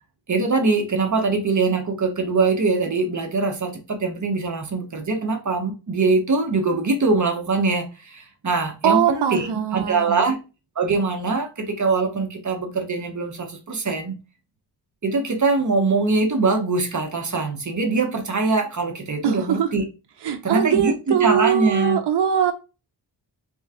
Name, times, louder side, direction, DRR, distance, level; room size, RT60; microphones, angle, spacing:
voice 1, 0.3-10.4 10.8-14.2 15.0-19.8 20.4-22.0, right 3 dB, 40° right, 0.9 m, -22 dB
voice 2, 8.8-10.2 19.2-19.7 20.2-22.5, right 9 dB, 70° right, 0.7 m, -21 dB
3.2 x 3.0 x 3.6 m
wide cardioid pair, 120°, 43 cm